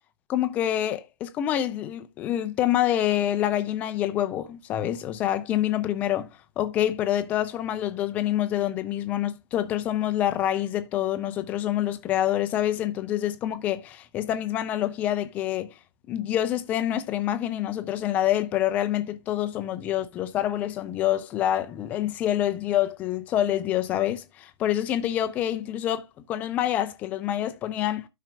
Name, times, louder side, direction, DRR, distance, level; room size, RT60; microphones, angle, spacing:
voice 1, 0.3-6.3 6.6-15.7 16.1-28.1, left 12 dB, 10° left, 0.4 m, -26 dB
12.5 x 5.6 x 2.3 m
figure-of-eight pair, 130°, 15 cm